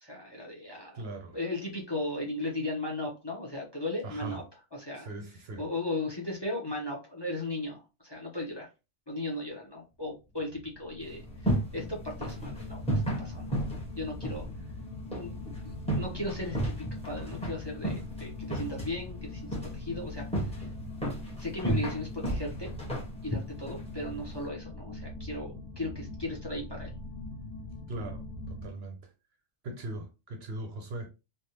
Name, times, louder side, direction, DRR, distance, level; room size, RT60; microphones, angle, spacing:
voice 1, 0.0-4.4 4.7-8.7 9.1-13.6 14.0-14.5 15.1-20.5 21.4-22.7 23.2-26.9, left 2 dB, 25° left, 0.7 m, -37 dB
voice 2, 1.0-1.4 4.0-4.4 5.0-5.6 27.9-28.2 28.5-29.0 29.6-31.1, right 2 dB, 60° right, 0.8 m, -39 dB
sound 1, 10.5-28.7, left 2 dB, 70° left, 0.8 m, -42 dB
sound 2, 11.0-24.5, right 1 dB, 5° left, 1.0 m, -35 dB
3.3 x 2.3 x 2.8 m
omnidirectional pair, 1.3 m